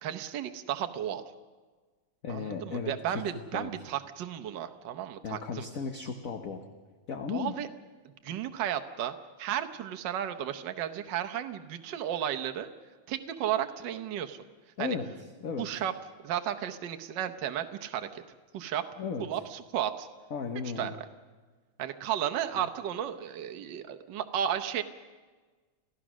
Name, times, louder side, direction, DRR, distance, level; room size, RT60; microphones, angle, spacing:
voice 1, 0.0-1.2 2.3-5.7 7.3-7.7 8.0-12.7 13.1-14.4 14.8-15.0 15.6-15.9 16.2-18.2 18.5-18.8 19.2-20.1 20.8-20.9 21.8-24.8, right 10 dB, 65° right, 7 dB, 1.5 m, -33 dB
voice 2, 2.2-3.7 5.2-6.7 7.1-7.5 14.8-15.1 15.4-15.7 19.0-19.3 20.3-21.0, left 6 dB, 45° left, 5 dB, 1.4 m, -35 dB
28.5 x 16.0 x 6.2 m, 1.4 s
omnidirectional pair, 2.4 m